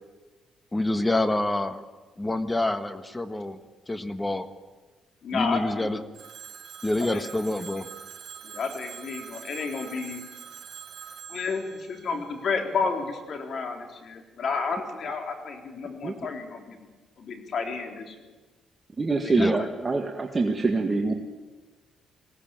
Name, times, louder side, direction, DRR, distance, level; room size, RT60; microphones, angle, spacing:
voice 1, 0.7-1.8 2.2-3.6 3.9-4.5 5.3-6.0 6.8-7.9 19.4-19.6, left 2 dB, 15° left, 10 dB, 1.5 m, -27 dB
voice 2, 5.2-6.0 7.0-7.3 8.4-10.2 11.3-16.9 17.2-18.2 19.2-19.7, left 4 dB, 60° left, 4 dB, 3.7 m, -31 dB
Telephone, 6.1-13.0, right 8 dB, 70° right, 4.1 m, -44 dB
voice 3, 19.0-21.1, right 3 dB, 30° right, 3 dB, 1.8 m, -25 dB
21.0 x 17.5 x 9.1 m, 1.3 s
cardioid pair, 90°, 0 cm